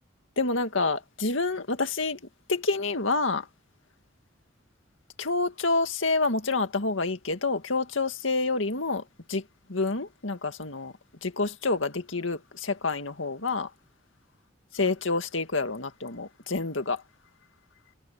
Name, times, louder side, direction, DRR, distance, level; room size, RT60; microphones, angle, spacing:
voice 1, 0.4-2.2 2.5-3.5 5.2-9.4 9.7-10.9 11.2-13.7 14.7-17.0, left 3 dB, 80° left, 2.1 m, -28 dB
head